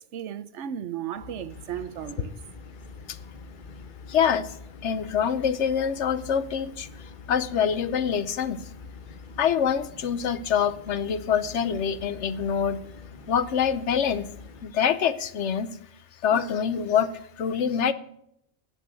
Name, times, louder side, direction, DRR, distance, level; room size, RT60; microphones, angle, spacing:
voice 1, 0.0-2.3, right 9 dB, 90° right, 1.1 m, -35 dB
sound 1, 1.1-14.6, left 4 dB, 45° left, 1.3 m, -45 dB
voice 2, 4.1-4.6 4.8-6.9 7.3-8.6 9.4-12.8 13.3-14.3 14.6-15.7 16.2-17.9, left 7 dB, 85° left, 1.1 m, -25 dB
10.0 x 8.4 x 6.1 m
omnidirectional pair, 1.2 m